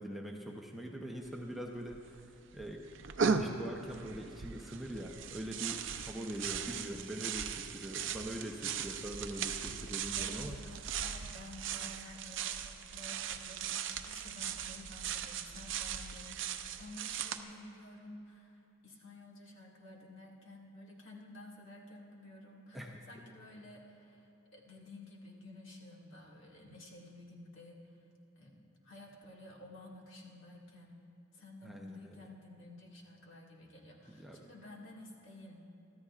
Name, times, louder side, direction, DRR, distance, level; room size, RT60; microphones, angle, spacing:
voice 1, 0.0-2.9 3.2-10.6 22.7-23.0 31.6-32.2 34.2-34.4, equal, ahead, -1 dB, 0.7 m, -43 dB
sound 1, 1.2-1.3 1.5-2.2 2.6-17.4, right 7 dB, 60° right, 0.6 m, -38 dB
voice 2, 10.2-27.9 28.4-31.1 31.3-35.7, left 1 dB, 60° left, -3 dB, 2.0 m, -52 dB
23.5 x 14.0 x 2.5 m, 2.9 s
head